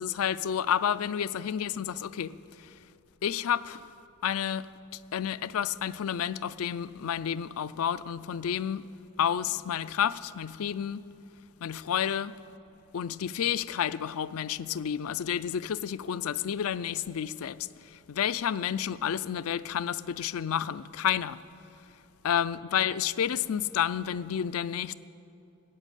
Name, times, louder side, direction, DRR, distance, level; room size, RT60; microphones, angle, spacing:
voice 1, 0.0-2.8 3.2-3.9 4.2-8.9 9.2-11.0 11.6-12.3 12.9-21.4 22.2-24.9, left 9 dB, 75° left, 0.4 m, -30 dB
14.0 x 9.1 x 8.2 m
head